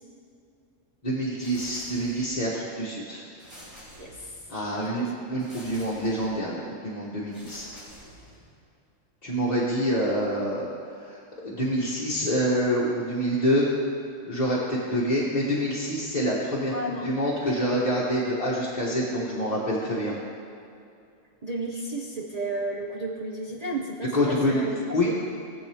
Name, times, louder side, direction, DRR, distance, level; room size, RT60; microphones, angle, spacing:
voice 1, 1.0-3.2 4.5-7.7 9.2-10.7 11.0-13.7 14.3-20.1 24.1-24.6 24.9-25.1, equal, 30° left, -7 dB, 1.3 m, -26 dB
sound 1, 1.4-2.5 3.4-4.6 5.4-6.4 7.3-8.6, equal, 75° right, 3.6 m, -48 dB
voice 2, 4.0-4.3 4.6-5.1 16.7-17.1 21.4-24.7 25.0-25.2, right 2 dB, 35° right, -2 dB, 0.7 m, -33 dB
17.0 x 7.6 x 3.4 m, 2.5 s
omnidirectional pair, 1.4 m